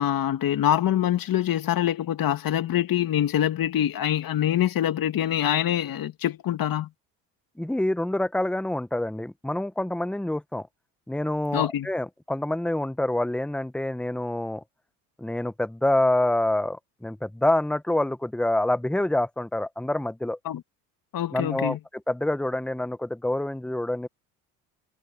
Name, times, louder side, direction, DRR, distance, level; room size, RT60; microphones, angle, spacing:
voice 1, 0.0-6.9 11.5-11.9 20.5-20.6 21.1-21.8, left 11 dB, 55° left, 2.4 m, -25 dB
voice 2, 7.6-10.7 11.1-14.6 15.2-20.4 21.3-24.1, left 1 dB, ahead, 1.0 m, -26 dB
supercardioid pair, 80°, 43 cm